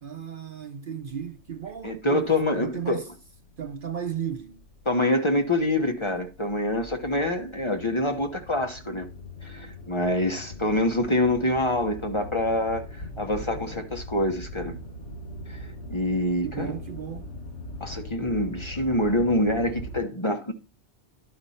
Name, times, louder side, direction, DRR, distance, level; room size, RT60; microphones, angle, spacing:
voice 1, 0.0-3.1 3.6-4.6 16.4-17.3, right 8 dB, 55° right, 0.7 m, -35 dB
sound 1, 1.0-20.0, left 1 dB, 85° left, 2.1 m, -42 dB
voice 2, 1.8-3.0 4.8-9.1 9.4-14.8 15.5-16.7 17.8-20.5, left 1 dB, 25° left, 1.0 m, -26 dB
11.5 x 4.3 x 4.2 m
omnidirectional pair, 1.2 m